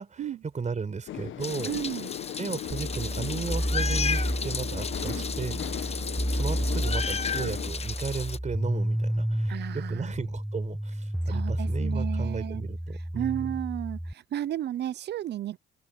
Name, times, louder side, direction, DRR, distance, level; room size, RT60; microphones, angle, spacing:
voice 1, 0.0-1.7 2.4-5.6 6.3-13.6, right 5 dB, 35° right, 5.0 m, -35 dB
sound 1, 1.1-7.7, left 12 dB, 80° left, 1.4 m, -38 dB
Meow, 1.4-8.4, left 5 dB, 30° left, 1.1 m, -34 dB
voice 2, 1.7-2.1 5.1-5.2 9.5-10.1 11.2-12.6 13.1-15.6, right 11 dB, 60° right, 0.6 m, -33 dB
sound 2, 2.7-14.1, equal, 5° right, 1.5 m, -31 dB
open air
cardioid pair, 90°, 20 cm